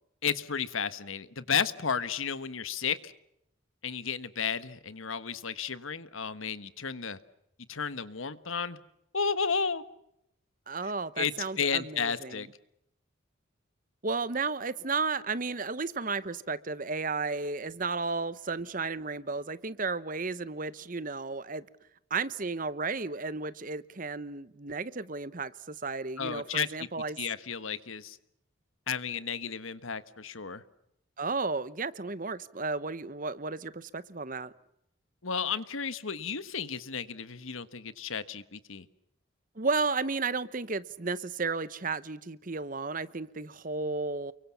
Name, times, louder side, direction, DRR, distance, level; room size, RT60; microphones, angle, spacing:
voice 1, 0.2-3.1 3.8-7.2 7.7-8.8 9.1-9.8 11.2-12.5 26.2-26.9 27.2-28.2 28.9-30.6 35.2-38.8, left 6 dB, 80° left, 13 dB, 1.4 m, -33 dB
voice 2, 10.7-12.4 14.0-21.6 22.1-27.2 31.2-34.5 39.6-44.3, right 4 dB, 40° right, 16 dB, 0.9 m, -33 dB
30.0 x 23.5 x 7.2 m, 0.80 s
head